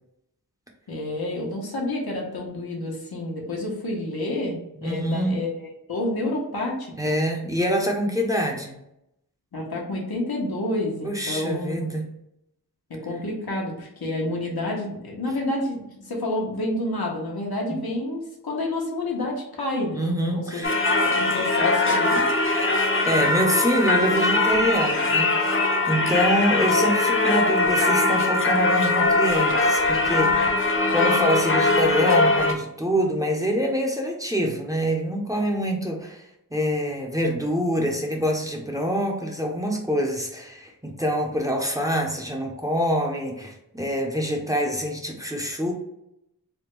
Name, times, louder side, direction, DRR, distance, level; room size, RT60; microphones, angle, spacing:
voice 1, 0.9-7.2 9.5-11.9 12.9-22.2, left 1 dB, 90° left, -2 dB, 1.0 m, -29 dB
voice 2, 4.8-5.4 7.0-8.7 11.0-12.1 17.7-17.8 19.9-20.8 23.0-25.6 25.9-36.2 36.5-45.7, equal, 10° right, 1 dB, 0.6 m, -25 dB
Singing / Church bell, 20.6-32.6, left 2 dB, 35° left, 0.5 m, -21 dB
3.4 x 2.2 x 3.0 m, 0.82 s
wide cardioid pair, 70°, 36 cm